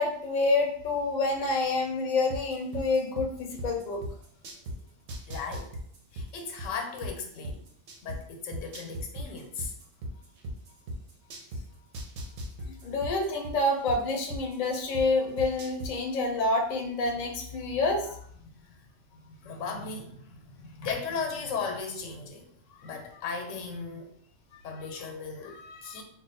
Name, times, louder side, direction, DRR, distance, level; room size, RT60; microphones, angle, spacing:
voice 1, 0.0-4.0 12.7-18.2, left 2 dB, 50° left, 2 dB, 0.5 m, -28 dB
sound 1, 2.3-4.7 5.1-8.2 8.5-11.6 11.9-15.0 15.4-15.9, right 1 dB, 85° right, 1.0 m, -37 dB
voice 2, 5.3-5.7 6.1-7.6 8.0-9.7 18.7-18.8 19.1-24.1 24.5-26.0, left 5 dB, 90° left, 3 dB, 1.0 m, -37 dB
2.4 x 2.3 x 4.0 m, 0.63 s
omnidirectional pair, 1.3 m